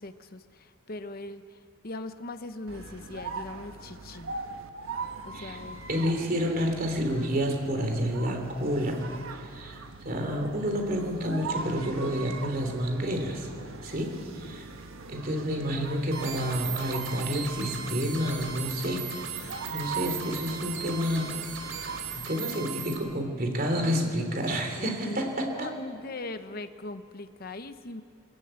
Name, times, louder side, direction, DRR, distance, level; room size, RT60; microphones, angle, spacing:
voice 1, 0.0-1.4 1.8-4.3 5.3-6.1 12.2-12.4 14.3-14.6 23.9-24.1 24.8-28.0, left 2 dB, 50° left, 9 dB, 0.9 m, -40 dB
sound 1, 2.7-22.3, right 4 dB, 85° right, 1.4 m, -41 dB
voice 2, 5.9-13.5 13.8-14.7 15.1-19.0 19.3-21.3 21.6-25.7, equal, 45° right, 3 dB, 3.1 m, -30 dB
sound 2, 16.1-23.0, right 7 dB, 70° right, 3.4 m, -37 dB
23.0 x 14.5 x 9.0 m, 2.4 s
head